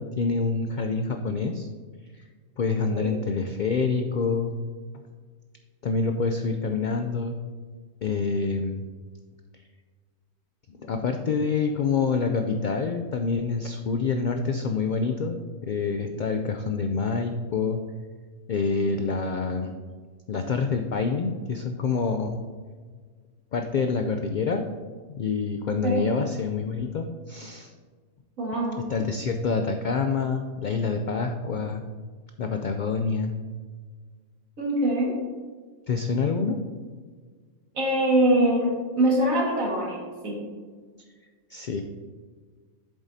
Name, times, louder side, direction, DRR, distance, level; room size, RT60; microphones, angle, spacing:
voice 1, 0.0-1.7 2.6-4.6 5.8-7.4 8.0-8.9 10.7-17.8 18.5-19.8 20.3-22.4 23.5-24.7 25.1-27.7 28.9-31.8 32.4-33.4 35.9-36.6 41.5-41.8, left 4 dB, 85° left, 6 dB, 0.4 m, -27 dB
voice 2, 28.4-28.8 34.6-35.1 37.7-40.4, right 1 dB, 85° right, -3 dB, 2.2 m, -23 dB
8.1 x 7.3 x 2.7 m, 1.5 s
omnidirectional pair, 1.4 m